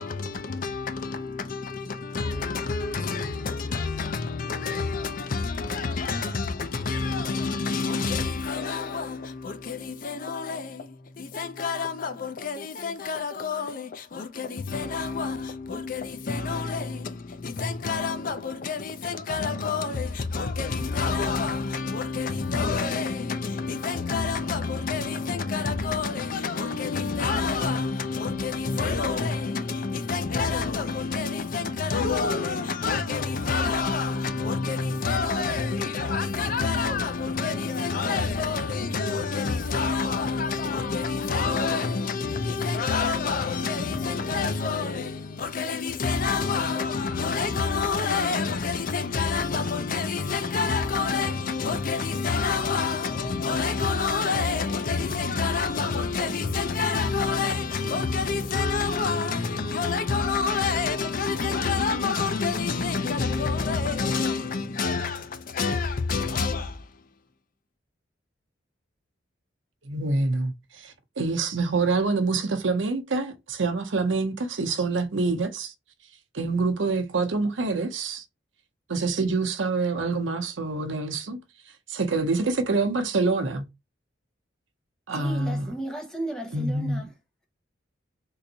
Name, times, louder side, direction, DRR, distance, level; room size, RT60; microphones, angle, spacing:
voice 1, 0.0-67.1, left 4 dB, 45° left, 0.4 m, -28 dB
voice 2, 69.8-75.7 76.3-78.2 78.9-81.4 81.9-83.7 85.1-85.7 86.5-87.0, right 3 dB, 80° right, 0.8 m, -26 dB
voice 3, 85.1-87.1, right 1 dB, 5° left, 0.8 m, -34 dB
3.8 x 2.6 x 2.8 m
head